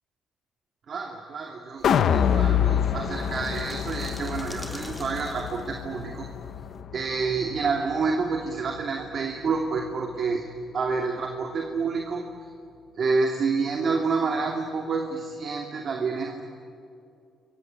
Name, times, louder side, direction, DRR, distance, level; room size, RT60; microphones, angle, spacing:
voice 1, 0.9-6.3 6.9-10.4 10.7-12.2 12.9-16.4, right 4 dB, 50° right, 2 dB, 2.7 m, -28 dB
sound 1, 1.8-8.1 8.4-8.5, left 9 dB, 65° left, 1.3 m, -27 dB
sound 2, 1.8-6.8, left 1 dB, 5° left, 3.1 m, -47 dB
28.5 x 23.5 x 8.8 m, 2.6 s
cardioid pair, 90°, 0 cm